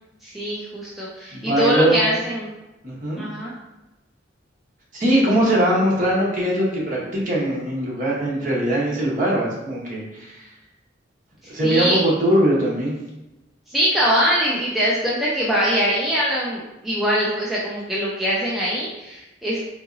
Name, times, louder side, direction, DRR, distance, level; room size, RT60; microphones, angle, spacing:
voice 1, 0.2-2.5 3.2-3.5 5.2-5.3 11.6-12.0 13.7-19.7, equal, ahead, -7 dB, 0.4 m, -23 dB
voice 2, 1.3-2.0 2.8-3.2 4.9-10.4 11.5-12.9, right 1 dB, 45° right, -5 dB, 1.0 m, -21 dB
3.7 x 2.8 x 2.5 m, 0.99 s
head